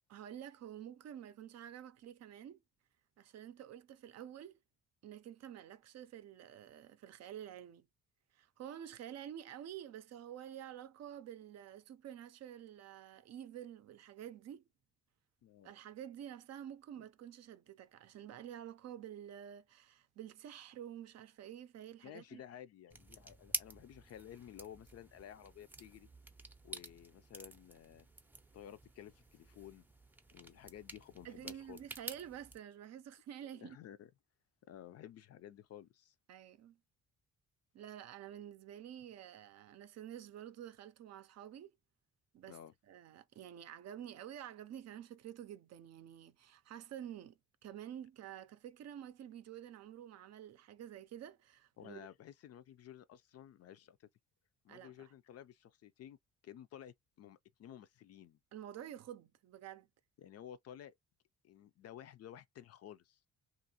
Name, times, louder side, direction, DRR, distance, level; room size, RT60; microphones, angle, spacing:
voice 1, 0.1-2.6 3.2-4.6 5.0-7.9 8.3-14.6 15.6-22.4 31.2-33.8 36.3-36.8 37.7-41.7 42.3-42.6 42.9-52.1 54.7-55.1 58.5-59.9, right 10 dB, 60° right, 0.5 m, -49 dB
voice 2, 15.4-15.7 22.0-26.1 26.6-28.1 28.5-29.9 30.3-31.8 33.5-34.1 34.7-36.1 42.5-42.7 51.8-54.1 54.6-56.2 56.4-58.4 60.2-60.9 61.4-63.2, left 10 dB, 55° left, 0.4 m, -53 dB
sound 1, 22.9-32.6, right 2 dB, 5° right, 0.5 m, -49 dB
2.9 x 2.5 x 2.7 m
cardioid pair, 90°, 30 cm